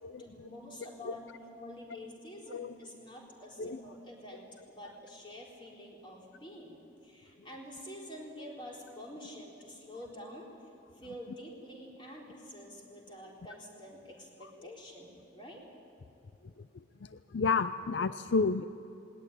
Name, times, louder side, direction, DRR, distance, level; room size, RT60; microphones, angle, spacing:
voice 1, 0.2-10.5 10.9-15.6, left 1 dB, 25° left, -2 dB, 4.0 m, -48 dB
voice 2, 17.0-18.6, left 4 dB, 70° left, 12 dB, 0.5 m, -31 dB
19.0 x 19.0 x 9.9 m, 3.0 s
head